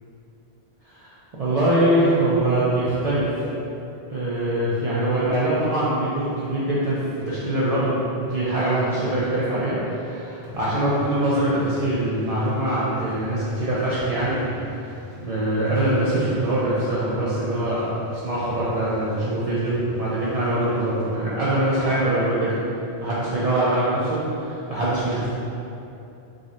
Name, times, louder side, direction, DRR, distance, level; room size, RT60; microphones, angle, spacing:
voice 1, 0.9-3.5 4.1-14.9 15.2-22.5 23.0-25.3, right 1 dB, 60° right, -10 dB, 0.4 m, -23 dB
sound 1, 10.4-21.2, equal, 90° right, 0.9 m, -42 dB
3.7 x 2.0 x 2.5 m, 2.8 s
omnidirectional pair, 1.1 m